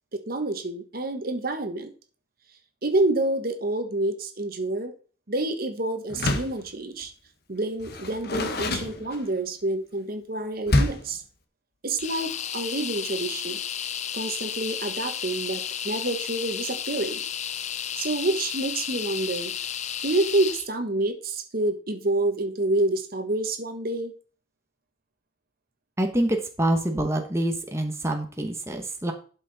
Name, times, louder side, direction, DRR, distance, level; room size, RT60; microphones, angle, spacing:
voice 1, 0.3-1.9 2.8-4.9 5.3-7.1 7.5-11.2 11.8-13.6 14.1-17.2 18.0-19.5 20.0-24.1, right 2 dB, 50° right, 7 dB, 1.3 m, -28 dB
Door, 6.1-6.6 7.8-9.5 10.7-11.2, left 1 dB, 55° left, 1.3 m, -26 dB
sound 1, 12.0-20.7, left 9 dB, 40° left, 0.5 m, -33 dB
voice 2, 26.0-29.1, right 1 dB, 15° right, 4 dB, 1.2 m, -26 dB
12.0 x 5.8 x 4.1 m, 0.39 s
head